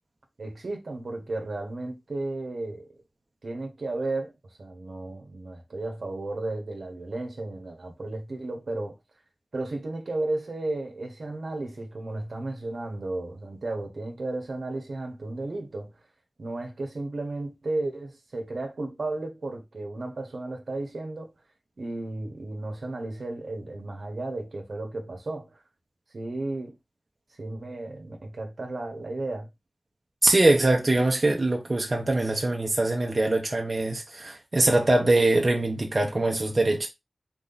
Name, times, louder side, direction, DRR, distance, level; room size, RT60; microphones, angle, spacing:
voice 1, 0.4-2.9 3.4-4.3 4.6-9.0 9.5-15.9 16.4-21.3 21.8-25.6 26.1-26.8 27.4-29.5, right 2 dB, 75° right, 1.3 m, -34 dB
voice 2, 30.2-36.9, right 2 dB, 45° right, 1.1 m, -23 dB
4.5 x 2.9 x 3.9 m
wide cardioid pair, 80°, 0 cm